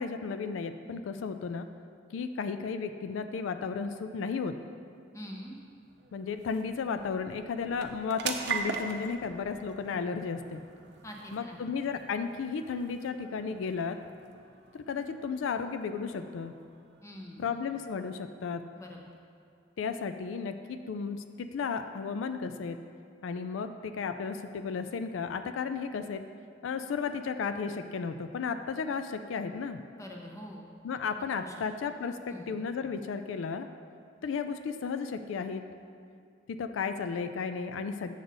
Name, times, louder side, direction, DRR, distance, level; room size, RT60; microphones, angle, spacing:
voice 1, 0.0-1.7 2.1-4.6 6.1-10.6 11.3-14.0 14.7-16.6 17.4-18.7 19.8-22.8 23.2-26.2 26.6-29.8 30.8-32.2 32.5-33.7 34.2-35.6 36.5-38.1, left 5 dB, 90° left, 9 dB, 0.4 m, -34 dB
sound 1, 4.8-19.7, right 5 dB, 60° right, 0.6 m, -43 dB
voice 2, 5.1-5.6 11.0-11.7 17.0-17.5 18.7-19.0 29.9-30.7 31.4-31.5 32.3-32.5, equal, 15° left, 0 dB, 0.8 m, -44 dB
7.8 x 6.5 x 3.9 m, 2.3 s
head